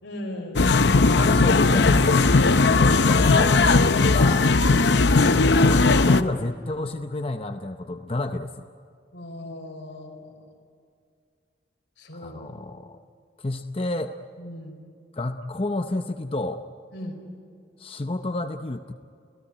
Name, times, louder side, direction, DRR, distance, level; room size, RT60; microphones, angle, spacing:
voice 1, 0.0-1.2 9.1-10.3 12.0-12.4 14.4-14.7 16.9-17.2, left 1 dB, 90° left, 3 dB, 4.5 m, -38 dB
sound 1, 0.6-6.2, left 3 dB, 70° left, 0.7 m, -18 dB
voice 2, 1.1-4.5 5.3-8.7 12.1-13.0 13.4-14.2 15.1-16.6 17.8-18.9, left 2 dB, 30° left, 7 dB, 0.6 m, -30 dB
30.0 x 16.5 x 9.9 m, 2.3 s
head